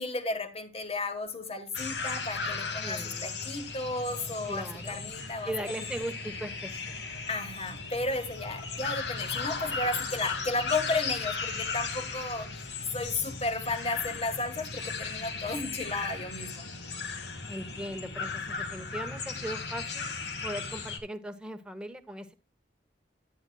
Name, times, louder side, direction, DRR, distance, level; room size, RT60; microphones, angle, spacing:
voice 1, 0.0-5.9 7.3-12.6 12.9-16.7, left 2 dB, 35° left, 1.4 m, -33 dB
sound 1, 1.7-21.0, left 4 dB, 75° left, 1.5 m, -36 dB
voice 2, 2.8-3.4 4.5-5.0 5.5-7.0 17.5-20.1 20.4-22.3, right 1 dB, 5° right, 0.9 m, -39 dB
10.5 x 9.6 x 2.3 m
head